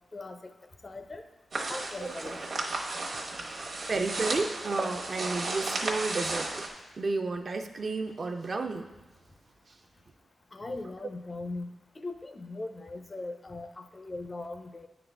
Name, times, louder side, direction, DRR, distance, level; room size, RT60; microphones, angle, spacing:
voice 1, 0.1-0.5 0.8-1.2 1.7-2.4 10.5-14.9, left 2 dB, 25° left, 8 dB, 0.4 m, -39 dB
sound 1, 1.5-6.7, right 2 dB, 60° right, 1.0 m, -34 dB
voice 2, 3.9-6.7 7.0-8.9, right 3 dB, 45° right, 6 dB, 0.4 m, -32 dB
9.7 x 3.9 x 3.3 m, 1.1 s
wide cardioid pair, 130°, 0 cm